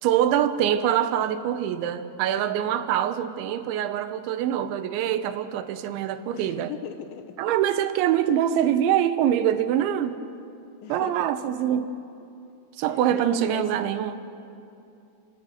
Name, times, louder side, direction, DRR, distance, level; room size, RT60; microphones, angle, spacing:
voice 1, 0.0-6.7 7.4-10.2 10.9-12.0 12.8-14.2, right 10 dB, 90° right, 3.3 m, -24 dB
voice 2, 6.3-7.4 10.8-11.2 12.9-13.7, left 9 dB, 80° left, 3.4 m, -39 dB
29.5 x 20.0 x 6.5 m
omnidirectional pair, 5.2 m